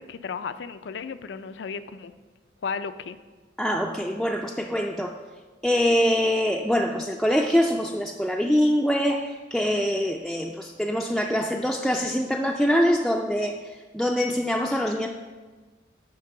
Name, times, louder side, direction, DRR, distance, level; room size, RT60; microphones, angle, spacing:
voice 1, 0.0-2.1 2.6-3.2, left 5 dB, 75° left, 12 dB, 0.4 m, -34 dB
voice 2, 3.6-5.1 5.6-13.6 13.9-15.1, equal, ahead, 0 dB, 0.3 m, -24 dB
9.4 x 4.7 x 5.7 m, 1.3 s
head